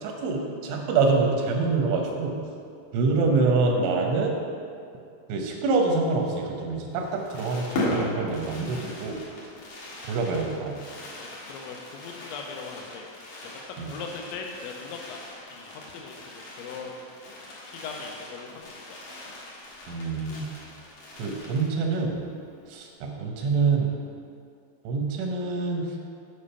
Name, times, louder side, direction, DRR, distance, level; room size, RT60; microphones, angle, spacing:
voice 1, 0.0-2.4 2.9-4.3 5.3-9.2 10.0-10.8 13.8-13.9 19.9-20.4 21.2-22.2 22.7-23.9 24.8-26.1, right 4 dB, 90° right, 1 dB, 3.4 m, -26 dB
Fireworks, 6.9-22.1 22.4-22.5 22.7-23.0, left 1 dB, 55° left, 2.4 m, -38 dB
voice 2, 11.2-13.1 13.8-17.0 17.7-19.0 19.4-19.5, left 5 dB, 85° left, 2 dB, 3.1 m, -40 dB
8.5 x 5.3 x 5.6 m, 2.4 s
omnidirectional pair, 5.3 m